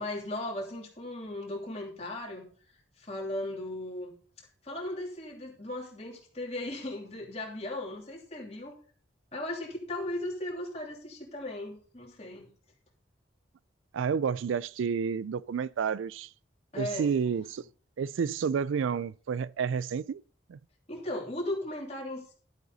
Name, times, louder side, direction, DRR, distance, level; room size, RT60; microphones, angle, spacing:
voice 1, 0.0-2.5 3.0-4.1 4.6-8.8 9.3-12.5 16.7-17.1 20.9-22.3, left 1 dB, 30° left, 2.9 m, -37 dB
voice 2, 13.9-16.3 16.8-17.7 18.0-20.2 20.5-20.6, right 6 dB, 80° right, 0.3 m, -30 dB
12.0 x 8.0 x 4.0 m
head